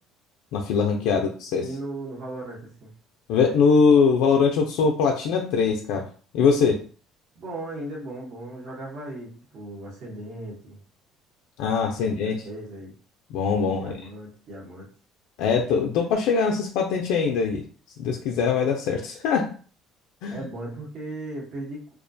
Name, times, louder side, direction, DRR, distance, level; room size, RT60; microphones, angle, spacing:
voice 1, 0.5-1.7 3.3-6.1 6.3-6.8 11.6-12.4 13.3-13.9 15.4-17.6 18.0-19.5 20.2-20.4, left 5 dB, 80° left, 1 dB, 0.3 m, -22 dB
voice 2, 1.6-2.9 7.4-10.8 12.0-12.9 13.8-14.9 20.3-22.0, right 1 dB, 55° right, -3 dB, 0.9 m, -37 dB
2.3 x 2.1 x 2.6 m, 0.40 s
cardioid pair, 130°, 0 cm